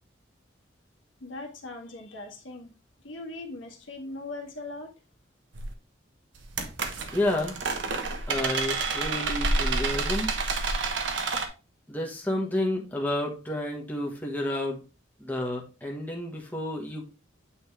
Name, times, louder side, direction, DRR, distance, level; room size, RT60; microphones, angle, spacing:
voice 1, 1.2-2.7 3.0-4.9, left 2 dB, 80° left, 2 dB, 1.7 m, -39 dB
sound 1, 5.5-5.7 6.4-11.5, right 3 dB, 75° right, 1.1 m, -29 dB
voice 2, 7.1-7.5 8.3-10.3 11.9-14.8 15.2-17.0, left 1 dB, 10° left, -1 dB, 1.3 m, -30 dB
8.8 x 4.3 x 3.3 m, 0.31 s
head